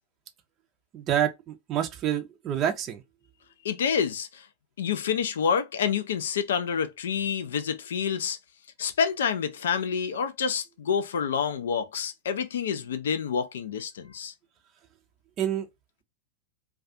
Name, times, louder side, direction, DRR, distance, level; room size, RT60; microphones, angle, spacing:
voice 1, 0.9-3.0 15.4-15.7, right 10 dB, 35° right, 0.5 m, -27 dB
voice 2, 3.6-4.5 4.8-8.4 8.8-14.3, left 7 dB, 60° left, 0.4 m, -28 dB
2.4 x 2.3 x 2.5 m
figure-of-eight pair, 90°, 0 cm